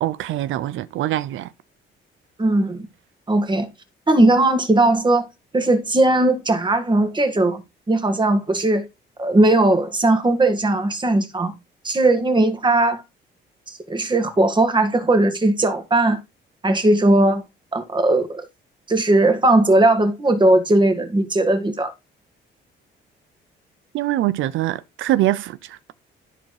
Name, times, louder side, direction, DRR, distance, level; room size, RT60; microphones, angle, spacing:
voice 1, 0.0-1.5 23.9-25.9, right 14 dB, 80° right, 0.5 m, -23 dB
voice 2, 2.4-2.9 3.3-3.7 4.1-5.3 5.5-7.6 7.9-8.9 9.2-11.5 11.8-13.0 13.7-16.2 16.6-17.4 17.7-18.4 18.9-21.9, right 2 dB, 25° right, 1.8 m, -18 dB
13.5 x 4.5 x 3.2 m
cardioid pair, 90°, 20 cm